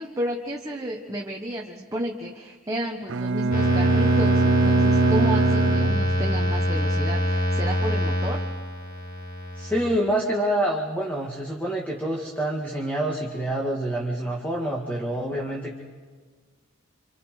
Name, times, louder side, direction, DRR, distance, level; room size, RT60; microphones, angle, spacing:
voice 1, 0.0-8.4, right 1 dB, 15° right, 0 dB, 1.2 m, -32 dB
Bowed string instrument, 3.1-6.7, right 3 dB, 60° right, 0.7 m, -22 dB
sound 1, 3.5-10.0, left 1 dB, 45° left, 6.4 m, -25 dB
voice 2, 9.6-15.8, right 1 dB, 10° left, -2 dB, 1.9 m, -27 dB
27.5 x 27.0 x 4.9 m, 1.5 s
head